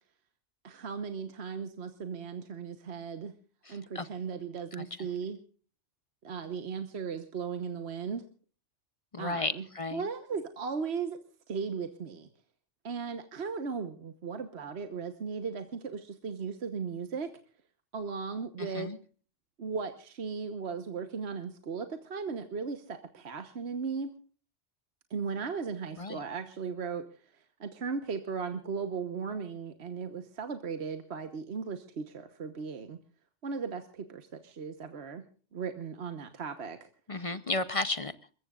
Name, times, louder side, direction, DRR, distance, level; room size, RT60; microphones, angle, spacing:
voice 1, 0.6-3.3 3.7-5.4 6.2-8.2 9.2-9.6 9.9-11.2 11.5-12.3 12.8-17.3 17.9-18.9 19.6-24.1 25.1-27.1 27.6-33.0 33.4-35.2 35.5-36.9, right 5 dB, 65° right, 8 dB, 1.4 m, -37 dB
voice 2, 3.7-4.1 4.7-4.8 9.1-10.0 18.6-19.0 26.0-26.2 37.1-38.1, left 2 dB, 35° left, 14 dB, 0.7 m, -33 dB
28.0 x 15.0 x 2.4 m, 0.39 s
omnidirectional pair, 1.2 m